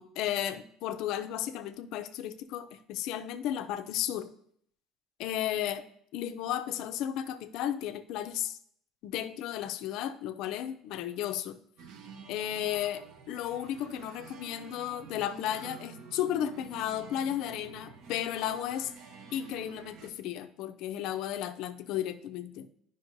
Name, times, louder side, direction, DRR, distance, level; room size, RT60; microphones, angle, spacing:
voice 1, 0.0-4.3 5.2-8.6 9.0-11.6 12.3-18.9 19.3-22.7, left 11 dB, 60° left, 10 dB, 0.4 m, -34 dB
sound 1, 11.8-20.1, right 5 dB, 55° right, 0.7 m, -49 dB
10.5 x 5.2 x 2.6 m, 0.67 s
cardioid pair, 170°, 0 cm